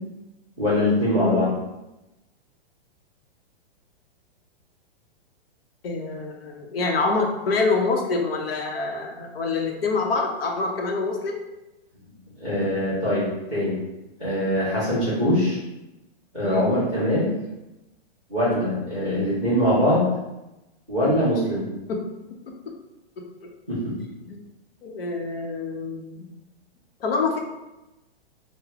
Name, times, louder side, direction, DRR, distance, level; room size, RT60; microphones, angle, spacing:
voice 1, 0.6-1.5 12.4-13.8 14.2-15.6 16.3-17.3 18.3-20.0 20.9-21.7 23.7-23.9, left 1 dB, 5° left, -18 dB, 0.3 m, -22 dB
voice 2, 5.8-11.3 16.4-16.7 21.9-22.0 22.7-22.8 23.2-23.5 24.3-24.4 24.8-26.3 27.0-27.4, left 3 dB, 70° left, 2 dB, 0.7 m, -26 dB
3.3 x 2.1 x 3.5 m, 0.98 s
hypercardioid pair, 175°, 31 cm